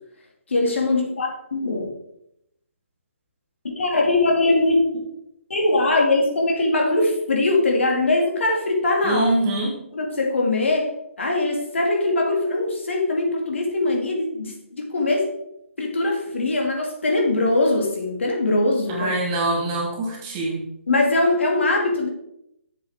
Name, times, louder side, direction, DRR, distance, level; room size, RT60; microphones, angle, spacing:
voice 1, 0.5-1.9 3.6-5.1 5.5-9.3 9.9-10.9 11.2-15.3 15.8-19.2 20.9-22.1, left 2 dB, 65° left, 1 dB, 2.3 m, -21 dB
voice 2, 9.0-9.7 18.9-20.6, right 2 dB, 15° right, -2 dB, 1.0 m, -24 dB
7.9 x 7.5 x 3.6 m, 0.79 s
hypercardioid pair, 180°, 7 cm